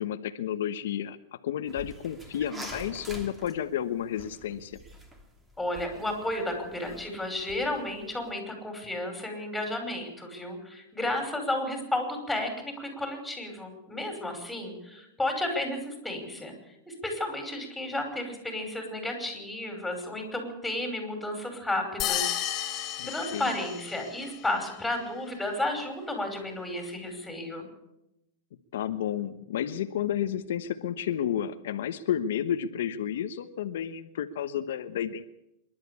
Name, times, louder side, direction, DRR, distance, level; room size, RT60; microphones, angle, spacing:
voice 1, 0.0-4.8 23.0-23.6 28.7-35.2, left 10 dB, 80° left, 8 dB, 1.1 m, -31 dB
sound 1, 1.7-8.3, right 1 dB, 15° right, 3.0 m, -46 dB
voice 2, 5.6-16.5 16.9-27.7, left 1 dB, 5° left, 4 dB, 5.5 m, -33 dB
sound 2, 22.0-24.3, left 12 dB, 35° left, 3.0 m, -32 dB
26.0 x 12.0 x 8.6 m, 0.88 s
supercardioid pair, 145°, 0 cm